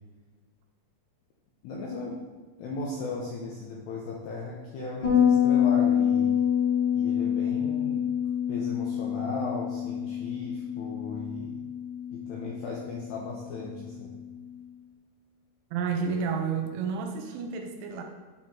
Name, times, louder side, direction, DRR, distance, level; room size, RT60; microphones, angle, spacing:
voice 1, 1.6-2.2 2.6-6.4 6.9-8.0 8.5-11.5 12.1-14.1, left 3 dB, 80° left, -3 dB, 2.3 m, -36 dB
Bass guitar, 5.0-14.4, left 9 dB, 40° left, 1.8 m, -27 dB
voice 2, 15.7-18.0, right 6 dB, 85° right, 4 dB, 3.1 m, -30 dB
8.4 x 4.4 x 3.7 m, 1.4 s
omnidirectional pair, 5.6 m